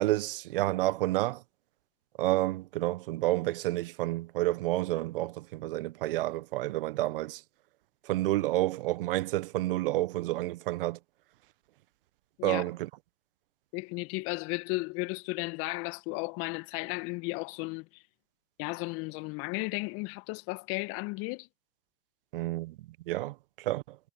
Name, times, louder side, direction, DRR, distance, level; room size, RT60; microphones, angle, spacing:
voice 1, 0.0-1.4 2.2-7.4 8.0-11.0 12.4-12.9 22.3-24.0, right 17 dB, 60° right, 1.3 m, -30 dB
voice 2, 13.7-17.9 18.6-21.5, left 26 dB, 45° left, 1.8 m, -34 dB
hypercardioid pair, 100°, 31 cm